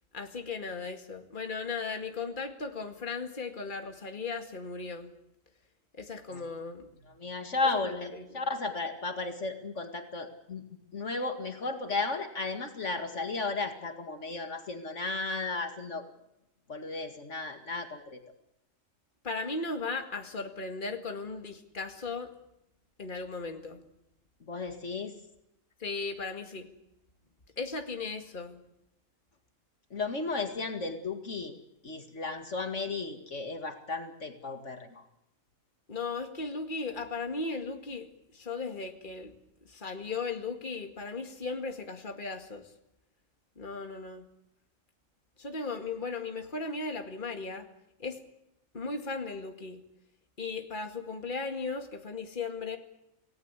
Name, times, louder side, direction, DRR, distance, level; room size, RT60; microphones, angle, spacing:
voice 1, 0.1-5.1 6.0-6.9 8.1-8.4 19.2-22.3 23.0-23.8 25.8-26.7 27.6-28.6 35.9-39.3 39.7-42.7 43.6-44.2 45.4-47.7 48.0-48.2 48.7-49.8 50.4-52.8, left 4 dB, 40° left, 5 dB, 2.3 m, -36 dB
voice 2, 7.1-10.6 10.9-16.0 16.7-18.2 24.5-25.1 29.9-31.5 31.8-35.0, left 3 dB, 65° left, 6 dB, 2.4 m, -34 dB
28.0 x 18.5 x 8.3 m, 0.83 s
omnidirectional pair, 1.3 m